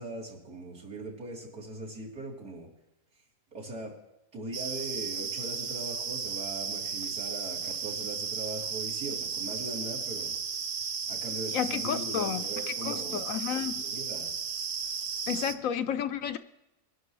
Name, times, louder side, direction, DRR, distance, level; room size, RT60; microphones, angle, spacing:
voice 1, 0.0-2.7 3.5-4.0 4.3-10.4 11.1-13.2 13.8-14.3, right 2 dB, 75° right, -5 dB, 4.1 m, -40 dB
sound 1, 4.5-15.5, right 6 dB, 50° right, 0.6 m, -34 dB
voice 2, 11.5-13.8 15.3-16.4, left 9 dB, 70° left, 10 dB, 0.9 m, -32 dB
23.0 x 11.0 x 3.2 m, 0.93 s
omnidirectional pair, 1.6 m